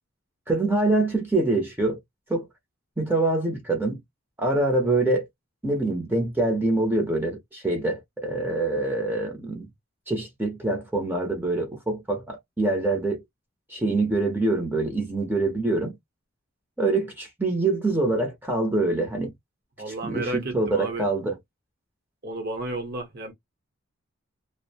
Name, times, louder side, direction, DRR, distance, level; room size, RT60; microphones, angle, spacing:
voice 1, 0.5-2.0 2.3-2.5 3.0-4.0 4.4-5.3 5.6-9.7 10.1-13.2 13.7-16.0 16.8-19.3 19.9-21.4, right 2 dB, 10° right, 0.7 m, -25 dB
voice 2, 19.8-21.1 22.2-23.3, right 2 dB, 50° right, 0.9 m, -32 dB
2.5 x 2.1 x 2.7 m
head